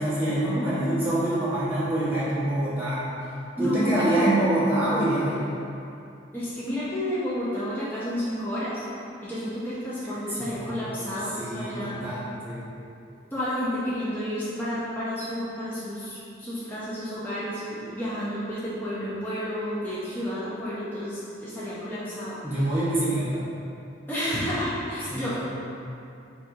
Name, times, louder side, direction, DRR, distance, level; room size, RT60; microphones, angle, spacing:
voice 1, 0.0-3.1 3.6-5.5 10.4-12.7 22.4-23.4 25.1-25.4, right 1 dB, 10° right, -13 dB, 1.2 m, -26 dB
voice 2, 3.6-4.3 6.3-8.9 9.2-12.0 13.3-22.4 24.1-25.4, equal, 10° left, -11 dB, 0.6 m, -31 dB
4.3 x 3.4 x 2.7 m, 2.6 s
head